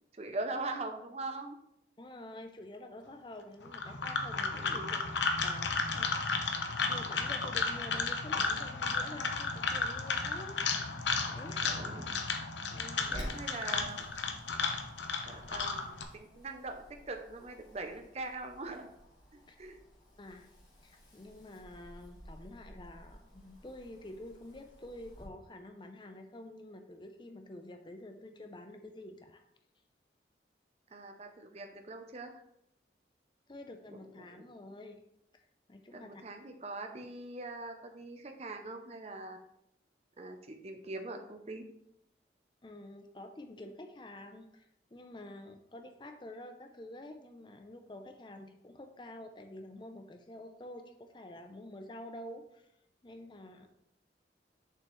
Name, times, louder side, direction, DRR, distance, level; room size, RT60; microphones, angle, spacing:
voice 1, 0.1-1.6 4.5-5.0 11.6-12.1 13.1-14.0 15.2-18.9 19.3-19.8 30.9-32.3 33.9-34.4 35.9-39.4 40.2-41.6, right 2 dB, 35° right, 5 dB, 0.6 m, -42 dB
voice 2, 2.0-5.0 5.4-10.6 11.3-11.7 12.7-13.4 19.5-19.6 20.2-20.5 20.8-29.4 33.5-35.0 35.3-36.2 42.6-52.7 53.0-53.7, left 1 dB, 25° left, 6 dB, 0.5 m, -48 dB
sound 1, 3.6-16.0, left 4 dB, 90° left, 0.8 m, -33 dB
Wind, 13.0-25.3, equal, 45° left, 2.3 m, -52 dB
7.0 x 5.6 x 3.1 m, 0.78 s
head